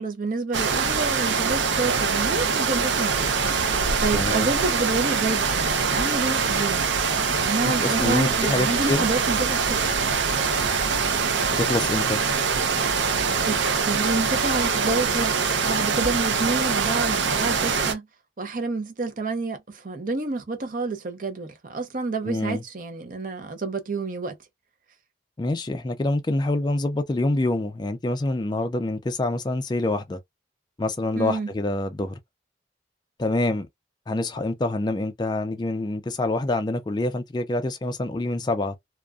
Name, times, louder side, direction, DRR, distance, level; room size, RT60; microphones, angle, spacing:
voice 1, 0.0-3.4 3.8-6.9 7.3-9.9 13.5-18.1 18.4-24.3 31.2-31.5, right 3 dB, 45° right, 0.6 m, -29 dB
sound 1, 0.5-17.9, right 5 dB, 90° right, 0.6 m, -23 dB
voice 2, 4.1-4.5 7.8-9.1 11.5-12.2 22.2-22.6 25.4-30.2 30.8-32.2 33.2-33.7 34.1-38.8, left 2 dB, 25° left, 0.3 m, -26 dB
2.4 x 2.2 x 2.3 m
head